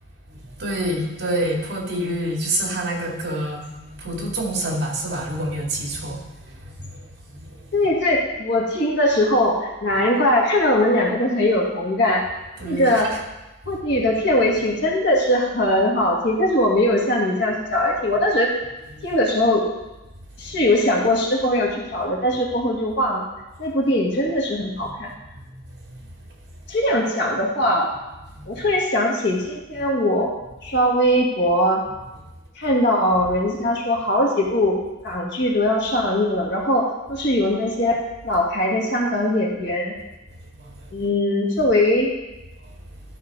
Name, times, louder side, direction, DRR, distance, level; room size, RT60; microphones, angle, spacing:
voice 1, 0.5-6.2 6.5-7.0 7.4-7.6 12.6-13.0 18.9-19.0 20.5-20.6 24.8-24.9 25.3-25.5 25.8-25.9 28.3-28.6 40.6-41.1, right 1 dB, 60° right, -1 dB, 2.0 m, -27 dB
voice 2, 7.7-12.3 12.6-13.1 13.7-18.5 19.0-19.6 20.4-23.2 23.6-25.1 26.7-27.9 28.5-30.3 30.6-31.8 32.6-34.8 35.0-38.0 38.2-39.9 40.9-42.1, left 1 dB, 65° left, -2 dB, 1.9 m, -20 dB
12.5 x 5.5 x 4.0 m, 1.0 s
head